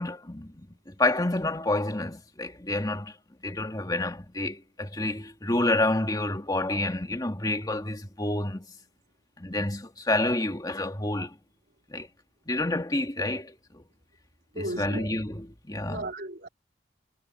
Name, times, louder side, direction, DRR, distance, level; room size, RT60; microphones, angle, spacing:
voice 1, 0.0-3.1 3.4-8.7 9.4-11.4 11.9-12.1 12.5-13.8 14.6-16.1, left 2 dB, 20° left, 2.2 m, -29 dB
voice 2, 14.5-15.1 15.9-16.5, right 2 dB, 60° right, 4.0 m, -35 dB
head